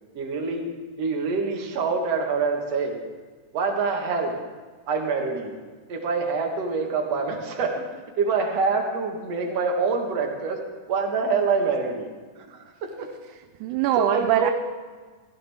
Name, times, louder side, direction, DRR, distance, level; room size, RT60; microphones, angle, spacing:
voice 1, 0.2-0.7 1.0-3.0 3.5-4.4 4.9-5.6 5.9-7.8 8.2-10.6 10.9-13.1 14.0-14.5, right 4 dB, 55° right, 2 dB, 2.5 m, -26 dB
voice 2, 13.3-14.5, right 13 dB, 80° right, 9 dB, 1.9 m, -24 dB
16.5 x 14.5 x 3.5 m, 1.5 s
omnidirectional pair, 3.6 m